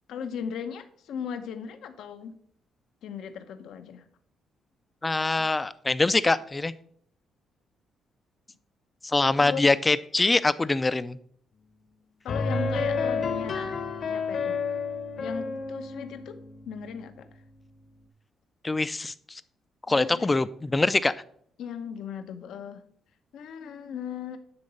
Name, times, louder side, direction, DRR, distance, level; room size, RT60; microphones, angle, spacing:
voice 1, 0.1-2.3 3.0-4.1 9.4-9.7 12.2-13.7 14.1-14.6 15.2-16.4 16.7-17.3 19.9-20.4 21.6-22.8 23.3-24.4, left 7 dB, 80° left, 9 dB, 0.8 m, -37 dB
voice 2, 5.0-6.7 9.0-11.2 18.6-19.1 19.9-21.1, left 3 dB, 20° left, 15 dB, 0.4 m, -24 dB
sound 1, 12.3-17.2, left 4 dB, 55° left, 1.0 m, -30 dB
9.7 x 3.8 x 5.5 m, 0.62 s
cardioid pair, 90°, 0 cm